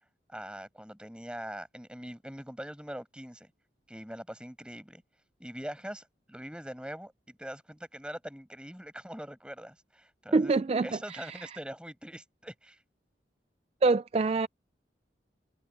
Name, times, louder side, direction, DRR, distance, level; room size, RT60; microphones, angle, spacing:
voice 1, 0.3-3.5 3.9-5.0 5.4-10.5 10.8-12.8, equal, 5° right, 6.1 m, -43 dB
voice 2, 10.3-11.6 13.8-14.5, right 3 dB, 35° right, 0.3 m, -26 dB
head